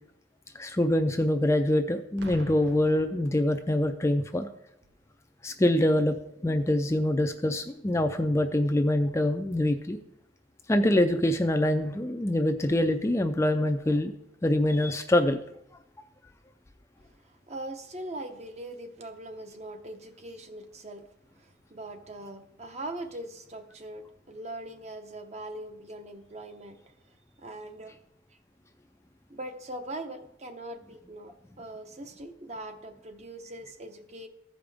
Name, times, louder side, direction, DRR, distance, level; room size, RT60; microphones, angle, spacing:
voice 1, 0.5-4.5 5.4-6.2 6.4-10.0 10.7-14.1 14.4-15.4, left 1 dB, 15° left, 6 dB, 0.4 m, -25 dB
Boom, 2.2-3.9 4.8-5.1, right 2 dB, 60° right, 0.7 m, -46 dB
voice 2, 17.1-21.1 21.3-26.9 27.4-28.0 29.3-34.3, right 1 dB, 35° right, 6 dB, 0.8 m, -41 dB
15.0 x 5.1 x 3.5 m, 0.78 s
head